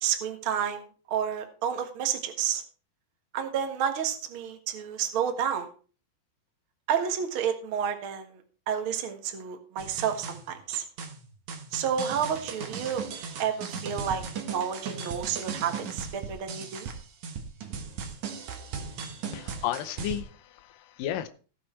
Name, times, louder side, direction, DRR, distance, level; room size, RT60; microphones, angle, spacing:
voice 1, 0.0-2.6 3.3-5.7 6.9-10.8 11.7-14.2 14.5-16.9, right 8 dB, 80° right, 5 dB, 1.1 m, -30 dB
sound 1, 9.8-20.2, right 6 dB, 60° right, 2.1 m, -37 dB
voice 2, 19.3-21.3, left 11 dB, 85° left, 7 dB, 1.9 m, -33 dB
17.0 x 6.4 x 4.4 m, 0.38 s
omnidirectional pair, 4.9 m